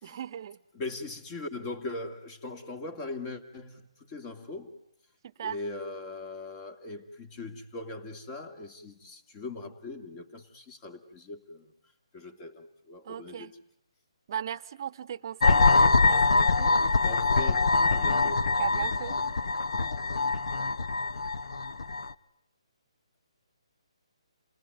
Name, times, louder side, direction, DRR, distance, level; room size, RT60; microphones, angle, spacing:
voice 1, 0.0-0.6 5.4-5.6 13.0-13.5 14.3-15.7 16.0-16.7 18.6-19.2, right 9 dB, 45° right, 0.9 m, -36 dB
voice 2, 0.7-4.7 5.4-11.7 12.1-13.5 17.0-18.6, left 2 dB, 25° left, 2.4 m, -40 dB
sound 1, 15.4-22.1, left 3 dB, 70° left, 0.9 m, -24 dB
28.5 x 19.0 x 9.4 m
hypercardioid pair, 155°, 3 cm